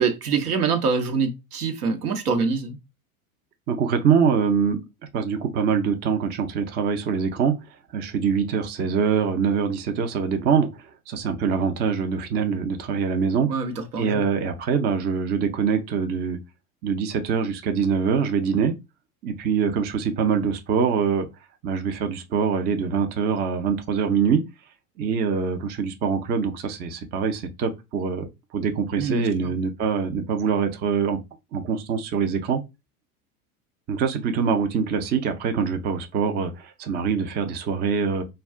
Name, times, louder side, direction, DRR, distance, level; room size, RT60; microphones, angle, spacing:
voice 1, 0.0-2.8 13.5-14.3 29.0-29.5, right 5 dB, 80° right, 0.8 m, -25 dB
voice 2, 3.7-4.8 5.1-7.6 7.9-10.7 11.1-13.5 14.0-16.4 16.8-18.7 19.2-21.3 21.6-24.4 25.0-28.3 28.5-31.2 31.5-32.6 33.9-38.2, right 6 dB, 25° right, 0.4 m, -24 dB
2.3 x 2.2 x 3.5 m
hypercardioid pair, 90°, 45 cm